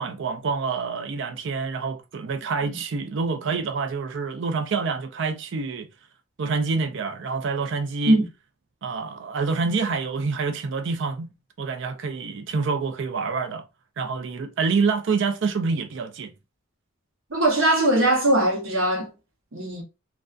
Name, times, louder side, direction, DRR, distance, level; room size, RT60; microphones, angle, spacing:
voice 1, 0.0-5.9 6.4-8.2 8.8-11.3 11.6-13.6 14.0-16.3, right 4 dB, 60° right, 0.4 m, -27 dB
voice 2, 17.3-19.1 19.5-19.8, right 1 dB, 75° right, 0.9 m, -20 dB
2.4 x 2.2 x 2.4 m
head